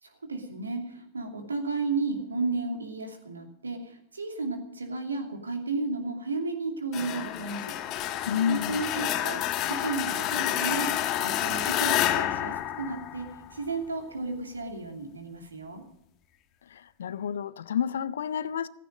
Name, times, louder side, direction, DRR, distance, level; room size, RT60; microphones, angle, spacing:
voice 1, 0.0-15.8, right 3 dB, 75° right, 2.7 m, -33 dB
sound 1, 6.9-13.6, left 12 dB, 35° left, 1.6 m, -29 dB
voice 2, 8.3-8.8 16.7-18.7, left 8 dB, 65° left, 0.6 m, -30 dB
16.0 x 15.0 x 5.2 m
figure-of-eight pair, 90°, 0 cm